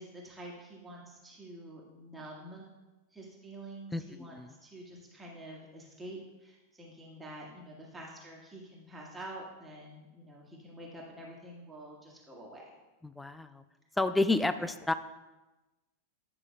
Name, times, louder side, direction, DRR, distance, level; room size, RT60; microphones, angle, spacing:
voice 1, 0.0-2.7 3.1-12.7 14.5-14.7, right 1 dB, 10° right, -3 dB, 1.7 m, -47 dB
voice 2, 3.9-4.5 13.0-13.6 14.0-14.9, left 2 dB, 5° left, 12 dB, 0.3 m, -30 dB
9.2 x 6.4 x 2.4 m, 1.1 s
figure-of-eight pair, 90°, 0 cm